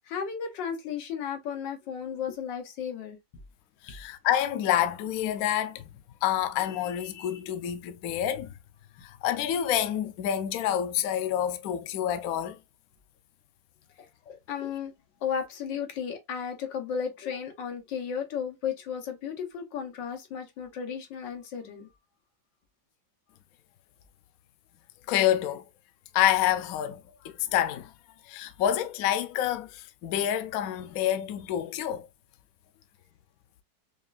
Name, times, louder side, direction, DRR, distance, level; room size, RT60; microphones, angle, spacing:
voice 1, 0.1-3.2 3.9-4.0 14.0-14.9 15.2-21.9, left 7 dB, 90° left, 1.6 m, -34 dB
voice 2, 3.8-5.9 6.2-8.5 9.0-12.6 25.1-25.6 26.1-27.9 28.2-32.1, left 11 dB, 70° left, 0.8 m, -28 dB
5.2 x 2.4 x 2.3 m
omnidirectional pair, 1.9 m